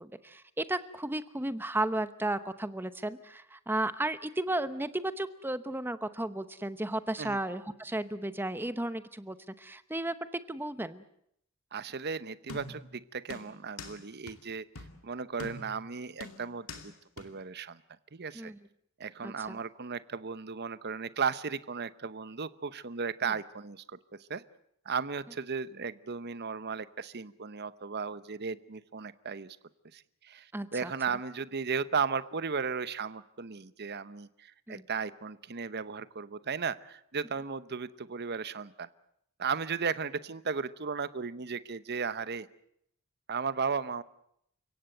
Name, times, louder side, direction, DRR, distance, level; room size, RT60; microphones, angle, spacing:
voice 1, 0.0-10.1 10.5-11.0 18.3-18.6 19.2-19.6 30.5-30.9 34.7-34.8, right 1 dB, 10° right, 12 dB, 0.9 m, -34 dB
voice 2, 11.7-14.6 15.0-17.8 18.1-18.5 19.0-23.8 24.3-24.4 24.8-29.6 29.9-38.9 39.4-42.5 43.3-44.0, right 5 dB, 50° right, 15 dB, 0.8 m, -35 dB
sound 1, 12.5-12.9 13.3-14.0 14.3-14.4 14.8-15.0 15.4-15.8 16.2-16.9 17.2-17.3, left 2 dB, 65° left, 2.5 m, -44 dB
29.5 x 17.0 x 7.8 m, 0.73 s
head